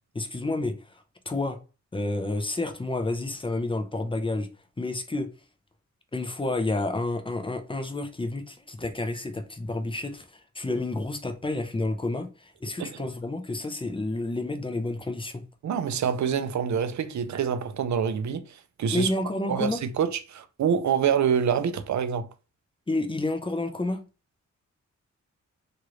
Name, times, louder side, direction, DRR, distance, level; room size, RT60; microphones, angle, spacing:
voice 1, 0.1-1.6 1.9-4.5 4.8-5.3 6.1-15.4 18.9-19.8 22.9-24.0, left 2 dB, 15° left, 0.6 m, -30 dB
voice 2, 15.6-19.1 19.5-22.3, right 7 dB, 70° right, 0.5 m, -26 dB
3.0 x 2.5 x 3.0 m
wide cardioid pair, 90°, 30 cm